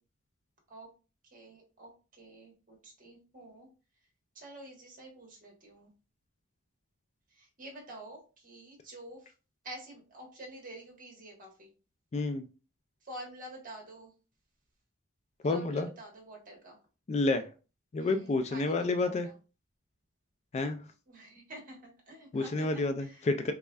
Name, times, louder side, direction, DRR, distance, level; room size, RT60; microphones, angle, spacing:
voice 1, 1.3-1.9 2.2-3.7 4.3-5.9 7.3-9.3 9.6-11.7 13.0-14.1 15.4-16.8 18.0-19.3 21.1-23.3, right 1 dB, 40° right, 0 dB, 1.4 m, -48 dB
voice 2, 12.1-12.4 15.4-15.9 17.1-17.5 17.9-19.3 20.5-20.8 22.3-23.5, left 3 dB, 30° left, 8 dB, 0.3 m, -29 dB
3.5 x 3.2 x 2.3 m, 0.33 s
head